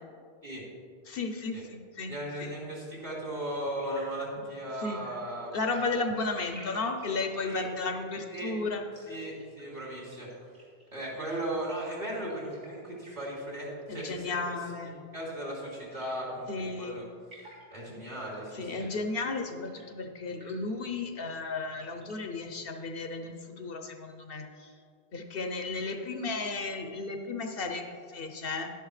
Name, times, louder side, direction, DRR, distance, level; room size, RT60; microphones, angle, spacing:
voice 1, 1.1-2.1 2.4-2.5 4.8-5.0 5.5-9.1 13.9-15.0 16.5-17.0 18.5-24.7 25.1-28.7, left 3 dB, 65° left, 5 dB, 1.0 m, -34 dB
voice 2, 2.1-5.5 7.4-7.7 8.3-8.5 9.1-10.3 10.9-16.5 16.8-17.0 17.7-18.9, right 1 dB, 45° right, -5 dB, 3.0 m, -37 dB
sound 1, 3.7-22.9, equal, 65° right, 3.1 m, -56 dB
11.0 x 10.5 x 3.2 m, 2.2 s
omnidirectional pair, 1.0 m